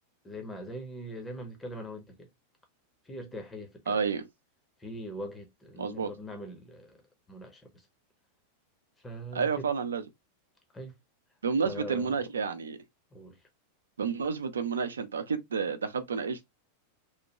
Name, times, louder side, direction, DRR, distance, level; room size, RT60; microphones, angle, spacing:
voice 1, 0.2-2.3 3.0-4.0 4.8-7.0 7.3-7.9 9.0-9.7 10.7-11.0 11.6-12.2 13.1-13.4, equal, 10° left, 0.8 m, -42 dB
voice 2, 3.9-4.2 5.8-6.1 9.3-10.0 11.4-12.8 14.0-16.4, right 5 dB, 70° right, 0.5 m, -30 dB
3.1 x 2.2 x 2.8 m
figure-of-eight pair, 90°, 0 cm